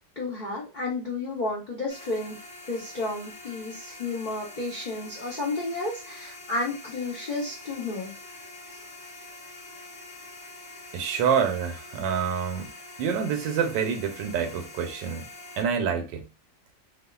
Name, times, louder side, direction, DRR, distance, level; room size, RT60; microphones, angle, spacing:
voice 1, 0.2-2.4 2.7-8.1, left 2 dB, 70° left, 0.4 m, -32 dB
sound 1, 1.9-15.6, left 2 dB, 30° left, 1.2 m, -45 dB
voice 2, 10.9-12.7 13.0-15.3 15.6-16.2, right 7 dB, 85° right, 1.3 m, -27 dB
2.9 x 2.3 x 2.2 m
omnidirectional pair, 2.0 m